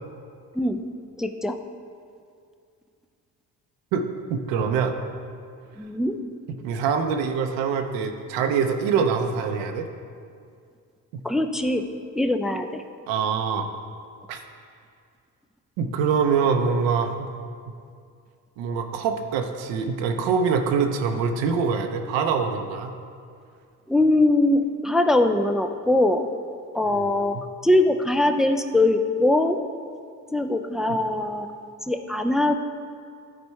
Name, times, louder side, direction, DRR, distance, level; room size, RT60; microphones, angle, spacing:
voice 1, 1.2-1.6 5.8-6.2 11.2-11.9 12.2-12.8 23.9-26.3 26.7-29.6 30.3-31.5 31.9-32.6, left 2 dB, ahead, 7 dB, 0.3 m, -22 dB
voice 2, 3.9-4.9 6.5-9.9 11.1-11.2 13.1-13.7 14.3-14.4 15.8-17.3 18.6-22.9 26.8-27.1 27.3-27.4, right 6 dB, 80° right, 5 dB, 0.7 m, -24 dB
9.8 x 4.3 x 4.5 m, 2.3 s
hypercardioid pair, 55°, 44 cm